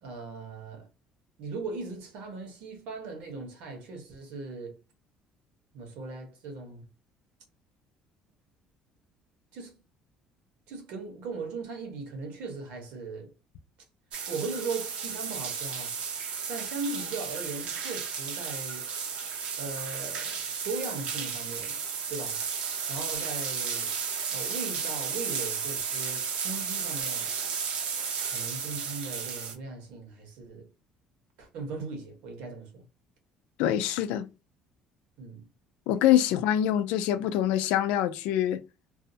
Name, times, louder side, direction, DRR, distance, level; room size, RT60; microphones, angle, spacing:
voice 1, 0.0-0.9 1.4-4.8 5.7-6.8 9.5-9.7 10.7-13.3 14.3-16.0 16.5-18.9 19.6-21.8 22.1-22.5 22.9-24.0 24.3-27.7 28.2-30.7 31.4-32.8 35.2-35.4, right 4 dB, 80° right, 1.2 m, -38 dB
sound 1, 14.1-29.5, right 6 dB, 60° right, 0.7 m, -33 dB
voice 2, 33.6-34.3 35.9-38.6, left 11 dB, 85° left, 0.4 m, -25 dB
2.6 x 2.0 x 2.7 m
cardioid pair, 130°, 2 cm